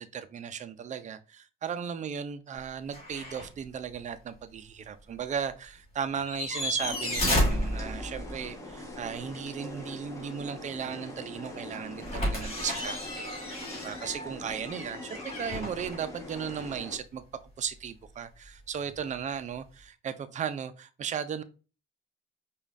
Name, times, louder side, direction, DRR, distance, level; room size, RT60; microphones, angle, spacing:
voice 1, 0.0-17.2 17.6-21.4, right 7 dB, 40° right, 0.4 m, -36 dB
sound 1, 2.9-3.5 3.9-4.0 6.1-8.4 12.0-16.8 18.9-19.0, left 1 dB, 30° left, 2.1 m, -32 dB
sound 2, 6.8-17.0, left 1 dB, 15° left, 1.0 m, -43 dB
5.0 x 2.3 x 2.5 m
cardioid pair, 90°, 20 cm